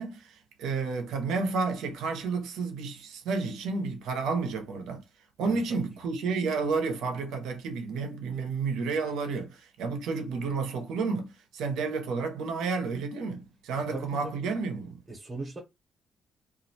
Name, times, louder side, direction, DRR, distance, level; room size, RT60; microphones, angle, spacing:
voice 1, 0.0-5.0 5.4-15.0, right 4 dB, 85° right, 0.7 m, -31 dB
voice 2, 5.4-5.8 13.9-14.4 15.1-15.6, right 3 dB, 25° right, 0.7 m, -39 dB
2.3 x 2.1 x 2.7 m
cardioid pair, 90°, 0 cm